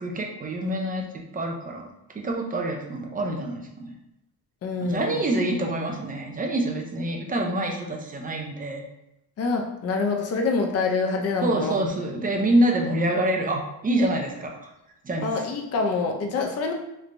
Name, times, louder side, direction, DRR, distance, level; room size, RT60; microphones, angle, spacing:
voice 1, 0.0-1.9 2.1-4.0 4.8-8.9 11.4-14.7 15.0-15.3, right 1 dB, 25° right, 1 dB, 0.4 m, -26 dB
voice 2, 4.6-5.2 9.4-11.8 15.2-16.7, left 3 dB, 40° left, 2 dB, 0.5 m, -26 dB
3.2 x 3.2 x 2.5 m, 0.88 s
wide cardioid pair, 165°, 39 cm